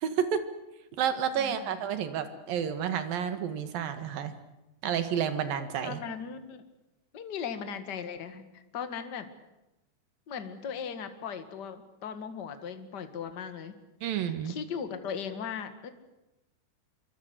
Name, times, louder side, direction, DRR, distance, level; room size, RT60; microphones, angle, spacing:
voice 1, 0.0-0.4 1.0-4.3 4.8-6.0 14.0-14.6, right 8 dB, 60° right, 10 dB, 3.2 m, -30 dB
voice 2, 1.4-1.8 5.8-6.6 7.1-9.3 10.3-13.7 14.4-15.9, left 7 dB, 50° left, 9 dB, 1.2 m, -38 dB
25.5 x 24.0 x 8.1 m, 0.97 s
omnidirectional pair, 4.8 m